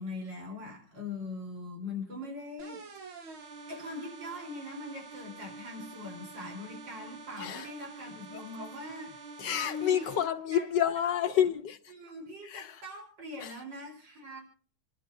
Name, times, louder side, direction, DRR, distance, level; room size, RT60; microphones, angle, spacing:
voice 1, 0.0-2.8 3.7-9.3 9.6-10.1 10.5-10.7 11.0-11.2 11.9-14.4, left 2 dB, 60° right, 4.6 m, -41 dB
sound 1, 2.6-10.3, right 3 dB, 90° right, 2.3 m, -47 dB
voice 2, 7.4-7.7 8.3-8.4 9.4-11.8 12.4-12.8 13.4-13.5, left 9 dB, 65° left, 1.5 m, -29 dB
28.5 x 11.0 x 2.7 m
omnidirectional pair, 2.2 m